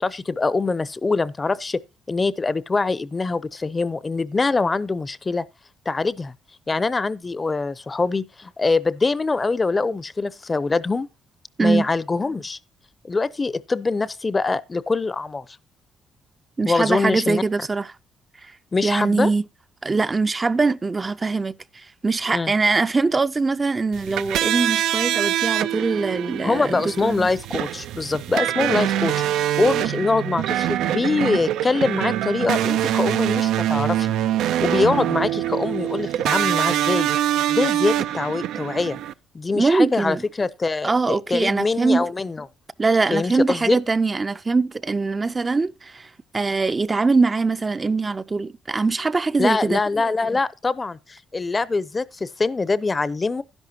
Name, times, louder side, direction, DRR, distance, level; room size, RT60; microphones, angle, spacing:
voice 1, 0.0-1.8 2.1-5.4 5.9-6.3 6.7-11.1 11.6-12.6 13.0-15.4 16.6-17.4 18.7-19.3 22.3-22.5 26.4-34.1 34.6-37.1 37.5-39.0 39.3-42.5 43.1-43.8 49.4-53.4, left 3 dB, 25° left, 0.6 m, -23 dB
voice 2, 16.6-17.9 18.4-18.5 18.8-19.4 19.8-27.3 39.5-40.2 40.8-42.1 42.8-49.8, right 3 dB, 30° right, 0.5 m, -22 dB
sound 1, 23.9-39.1, right 12 dB, 85° right, 0.4 m, -24 dB
11.5 x 11.0 x 2.8 m
cardioid pair, 90°, 0 cm